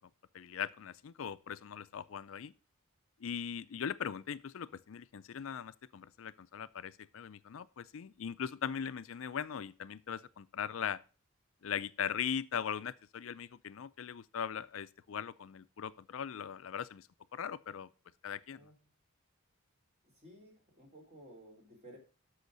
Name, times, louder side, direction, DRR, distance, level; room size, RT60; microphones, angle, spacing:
voice 1, 0.3-2.5 3.2-11.0 11.6-17.1 17.3-17.9 18.2-18.6, left 8 dB, 70° left, 0.4 m, -40 dB
voice 2, 20.1-22.0, right 1 dB, 35° right, 3.6 m, -55 dB
8.1 x 6.3 x 6.4 m
head